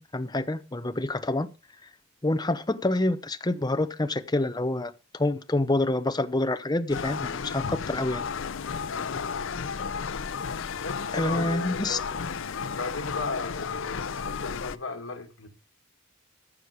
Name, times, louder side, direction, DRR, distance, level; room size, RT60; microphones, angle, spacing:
voice 1, 0.0-1.5 2.2-8.2 11.1-12.0, left 2 dB, 20° left, 0.8 m, -27 dB
sound 1, 6.9-14.8, left 6 dB, 65° left, 0.6 m, -33 dB
voice 2, 8.9-9.5 10.8-12.2 12.7-15.5, left 3 dB, 85° left, 2.1 m, -36 dB
15.0 x 6.5 x 5.1 m
head